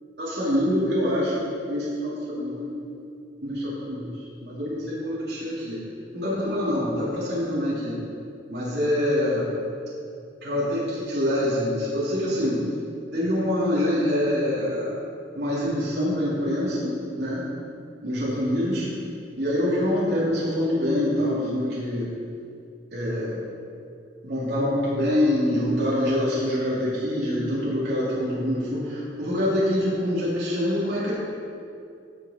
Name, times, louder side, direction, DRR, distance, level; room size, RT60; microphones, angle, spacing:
voice 1, 0.2-2.7 3.4-5.8 6.1-7.9 8.5-9.5 10.4-12.7 13.1-14.9 15.3-17.5 18.0-18.9 19.3-22.1 22.9-23.4 24.2-31.1, left 1 dB, 70° right, -9 dB, 3.0 m, -25 dB
16.0 x 6.2 x 4.3 m, 2.5 s
head